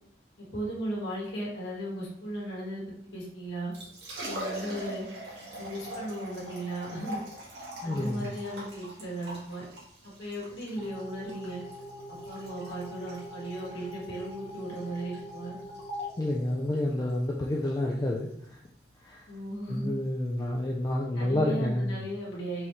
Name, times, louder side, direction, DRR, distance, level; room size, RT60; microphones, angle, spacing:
voice 1, 0.5-2.8 3.1-3.7 4.2-5.0 5.6-7.2 7.8-9.6 10.0-11.6 12.1-15.6 19.3-19.9 21.1-22.7, right 1 dB, 75° left, -5 dB, 1.5 m, -36 dB
Liquid, 3.7-20.9, right 1 dB, 70° right, 1.6 m, -44 dB
voice 2, 7.8-8.3 16.2-18.6 19.0-19.2 19.7-22.0, left 1 dB, 20° left, -1 dB, 0.3 m, -29 dB
sound 1, 10.8-17.3, left 1 dB, 35° left, 0.9 m, -43 dB
4.4 x 3.4 x 3.1 m, 0.69 s
head